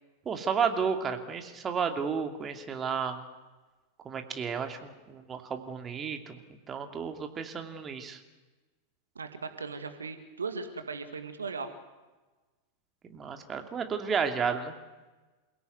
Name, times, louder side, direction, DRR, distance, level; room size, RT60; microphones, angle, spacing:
voice 1, 0.3-3.2 4.0-6.4 6.7-8.2 13.1-14.8, right 6 dB, 20° right, 6 dB, 2.6 m, -32 dB
voice 2, 9.2-11.7, right 4 dB, 75° right, 8 dB, 2.1 m, -37 dB
28.5 x 17.0 x 9.5 m, 1.2 s
figure-of-eight pair, 90°, 0 cm